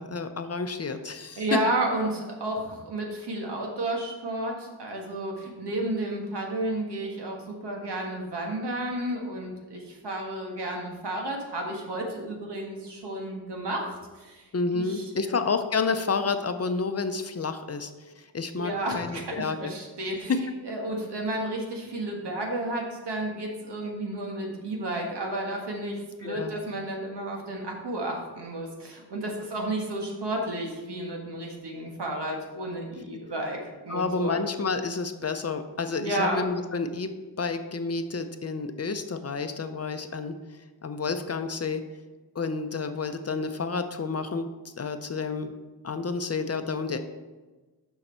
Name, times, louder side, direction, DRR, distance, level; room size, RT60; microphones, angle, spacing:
voice 1, 0.0-1.6 14.5-17.9 18.2-19.7 20.3-20.4 26.2-26.5 33.9-37.1 37.4-40.3 40.8-41.8 42.3-44.5 44.7-45.5 45.8-47.0, left 4 dB, 40° left, 8 dB, 0.6 m, -30 dB
voice 2, 1.4-14.5 14.7-15.4 18.5-34.4 36.0-36.5, right 1 dB, 85° right, 0 dB, 1.6 m, -32 dB
6.6 x 5.8 x 4.3 m, 1.2 s
wide cardioid pair, 85°, 40 cm